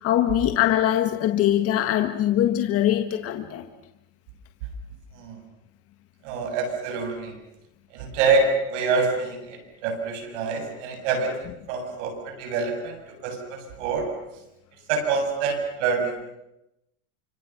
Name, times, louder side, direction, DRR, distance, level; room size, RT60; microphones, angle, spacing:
voice 1, 0.0-3.7, left 12 dB, 40° left, 1.6 m, -22 dB
voice 2, 6.2-7.4 7.9-11.3 11.7-14.1 14.9-16.3, right 4 dB, 75° right, 7.3 m, -26 dB
29.0 x 26.5 x 6.0 m
supercardioid pair, 135°, 36 cm